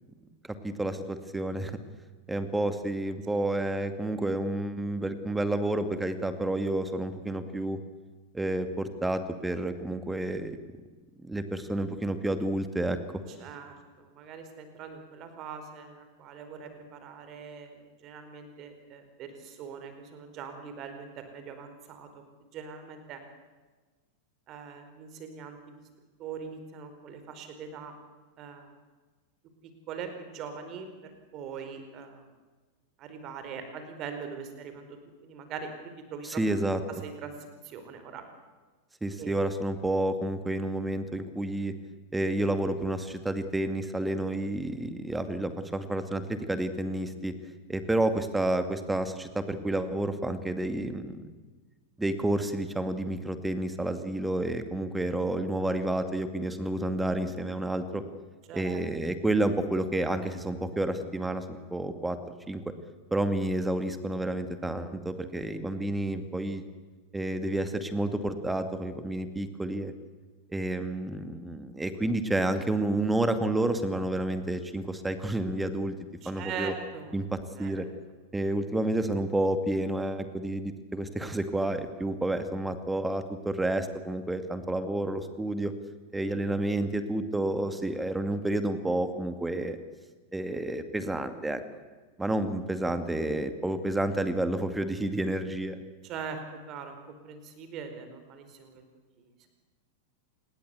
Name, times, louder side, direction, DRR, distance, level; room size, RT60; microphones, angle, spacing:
voice 1, 0.6-1.7 2.3-7.8 8.3-10.6 11.2-13.0 36.2-36.8 39.0-41.7 42.1-47.3 47.7-51.3 52.0-58.0 58.5-62.2 62.5-62.6 63.1-66.6 67.1-69.9 70.5-75.9 76.3-76.7 77.1-77.9 78.3-85.7 86.1-89.8 90.3-91.6 92.2-95.8, right 1 dB, 5° right, 10 dB, 2.3 m, -30 dB
voice 2, 13.4-22.2 22.5-23.2 24.5-25.7 26.2-27.9 28.4-28.7 29.9-32.2 33.0-35.7 36.1-36.4 37.0-38.2 39.2-39.4 58.5-58.8 76.2-77.1 77.6-77.7 96.0-98.8 99.2-99.5, right 6 dB, 35° right, 8 dB, 4.6 m, -42 dB
27.0 x 20.5 x 8.2 m, 1.3 s
figure-of-eight pair, 90°, 0 cm